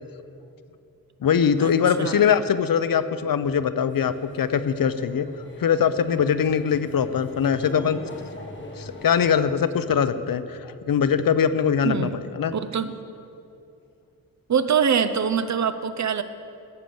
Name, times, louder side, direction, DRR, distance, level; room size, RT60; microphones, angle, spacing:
voice 1, 1.2-5.3 5.6-8.0 8.8-12.5, left 7 dB, 75° left, 12 dB, 0.7 m, -22 dB
sound 1, 3.9-9.3, left 1 dB, 30° left, 1.6 m, -42 dB
voice 2, 11.8-12.2 12.5-12.9 14.5-16.2, right 7 dB, 50° right, 11 dB, 0.7 m, -24 dB
15.5 x 7.6 x 7.0 m, 2.6 s
wide cardioid pair, 120°, 35 cm